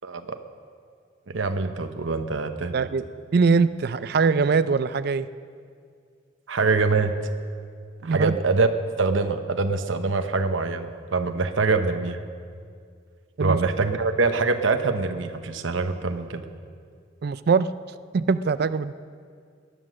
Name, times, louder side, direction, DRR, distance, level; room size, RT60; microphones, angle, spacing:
voice 1, 0.0-0.4 1.3-2.7 6.5-7.1 8.0-8.7 9.0-12.2 13.4-16.4, right 3 dB, 90° right, 7 dB, 0.9 m, -24 dB
voice 2, 2.7-3.0 3.3-5.3 8.0-8.3 13.4-13.6 17.2-17.7 18.1-18.9, right 4 dB, 55° right, 14 dB, 0.4 m, -22 dB
19.0 x 11.0 x 6.3 m, 2.2 s
head